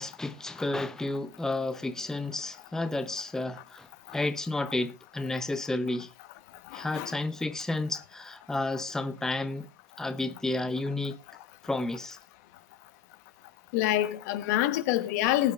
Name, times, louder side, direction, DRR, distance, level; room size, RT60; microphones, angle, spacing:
voice 1, 0.0-6.1 6.7-9.7 10.0-11.2 11.6-12.2, left 2 dB, 5° left, 0.8 m, -31 dB
voice 2, 6.7-7.1 13.7-15.5, left 14 dB, 60° left, 1.2 m, -26 dB
20.0 x 8.9 x 2.5 m
supercardioid pair, 125°, 10 cm